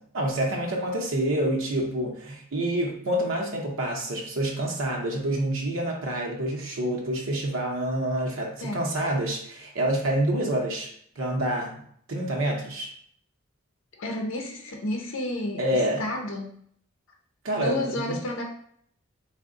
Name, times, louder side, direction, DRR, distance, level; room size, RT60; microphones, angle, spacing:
voice 1, 0.1-10.9 11.2-11.8 12.1-12.9 15.6-16.0 17.4-18.2, right 1 dB, 80° right, 0 dB, 0.7 m, -27 dB
voice 2, 14.0-16.5 17.6-18.4, left 1 dB, 80° left, 1 dB, 0.5 m, -31 dB
3.5 x 2.1 x 3.6 m, 0.65 s
head